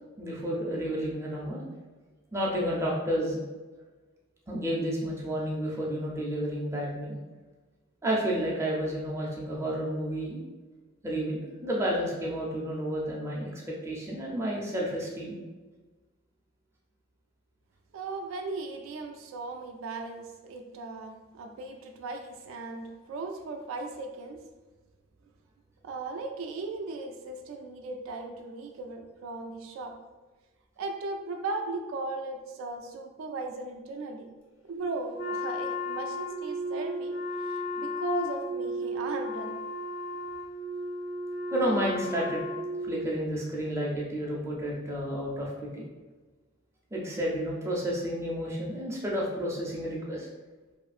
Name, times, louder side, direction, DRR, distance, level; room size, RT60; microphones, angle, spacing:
voice 1, 0.2-1.6 2.3-3.4 4.5-7.2 8.0-10.4 11.0-15.4 41.5-42.4 42.8-45.8 46.9-50.3, equal, 15° right, -4 dB, 0.4 m, -31 dB
voice 2, 17.9-24.4 25.8-30.0 30.8-34.3 34.7-37.1 37.5-39.6, right 3 dB, 80° right, 4 dB, 0.3 m, -37 dB
Wind instrument woodwind instrument, 35.2-43.1, left 1 dB, 70° left, 0.6 m, -34 dB
2.7 x 2.4 x 2.4 m, 1.3 s
head